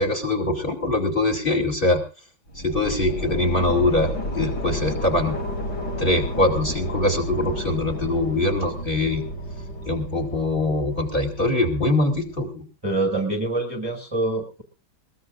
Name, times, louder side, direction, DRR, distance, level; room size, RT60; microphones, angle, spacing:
voice 1, 0.0-2.0 2.5-5.4 6.0-9.2 9.8-12.7, left 2 dB, 25° left, 3 dB, 2.6 m, -23 dB
sound 1, 2.5-12.4, equal, 50° left, 6.4 m, -32 dB
voice 2, 12.8-14.6, right 2 dB, 10° right, 1 dB, 1.8 m, -25 dB
21.5 x 19.0 x 2.6 m, 0.34 s
omnidirectional pair, 2.3 m